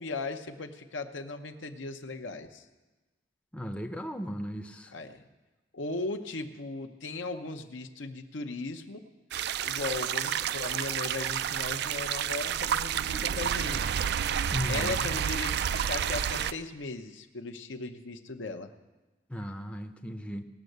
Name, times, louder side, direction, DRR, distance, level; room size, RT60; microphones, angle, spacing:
voice 1, 0.0-2.6 4.9-5.2 5.7-9.0 9.6-13.8 14.7-18.7, left 3 dB, 75° left, 5 dB, 0.9 m, -37 dB
voice 2, 3.5-4.9 14.5-15.1 19.3-20.4, equal, 5° left, 5 dB, 0.6 m, -36 dB
sound 1, 9.3-16.5, right 9 dB, 60° right, 0.3 m, -30 dB
19.0 x 6.4 x 8.0 m, 1.2 s
head